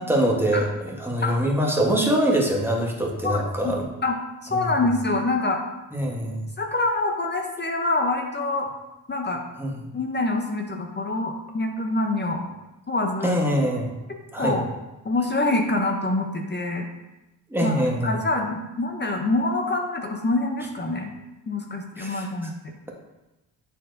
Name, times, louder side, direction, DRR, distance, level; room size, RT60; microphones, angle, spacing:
voice 1, 0.0-3.9 4.5-4.7 5.9-6.4 9.6-9.7 13.2-13.9 14.3-14.6 17.5-18.1 22.0-22.3, right 1 dB, 5° right, -1 dB, 1.0 m, -23 dB
voice 2, 3.2-3.7 4.0-4.1 4.5-5.6 6.6-8.7 9.1-9.4 9.9-12.4 12.9-13.4 14.1-14.7 15.0-16.9 17.6-17.7 18.0-21.1 21.5-22.5, left 2 dB, 25° left, 3 dB, 0.6 m, -25 dB
9.0 x 4.2 x 2.5 m, 1.0 s
cardioid pair, 110°, 44 cm